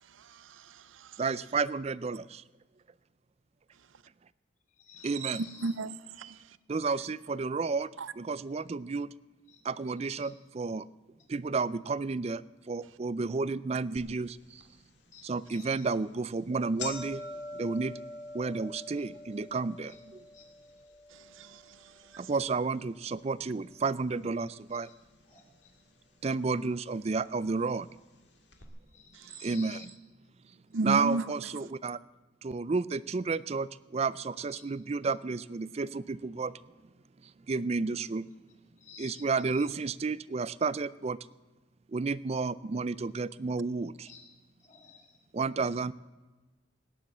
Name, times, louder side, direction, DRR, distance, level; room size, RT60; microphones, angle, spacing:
voice 1, 0.2-1.2 5.2-5.9 6.2-6.4 8.0-8.1 21.3-21.8 22.1-22.2 29.1-29.3 30.7-31.2, right 3 dB, 80° right, 0.6 m, -34 dB
voice 2, 1.2-2.4 5.0-5.4 6.7-9.1 9.6-10.9 11.3-14.6 15.2-17.2 17.5-17.9 18.3-20.0 22.2-24.9 26.2-27.9 29.4-29.8 30.8-32.0 32.4-36.6 37.5-38.3 39.0-41.2 41.9-44.1 45.3-45.9, right 4 dB, 30° right, 0.4 m, -31 dB
voice 3, 4.7-5.7 6.2-6.3 9.5-9.6 10.0-10.3 11.0-11.3 15.1-15.9 18.8-19.0 19.8-20.0 20.3-20.9 24.7-25.0 25.2-25.8 28.5-29.9 34.5-34.6 38.8-39.7 43.9-45.3, left 6 dB, 40° left, 3.3 m, -54 dB
sound 1, 14.0-14.1 14.6-14.7 15.5-15.7 16.0-16.2 16.4-24.6 24.9-25.6 26.4-26.5 27.5-27.6 27.8-27.9 28.5-28.6, left 3 dB, 60° left, 2.0 m, -46 dB
18.0 x 10.0 x 7.3 m
head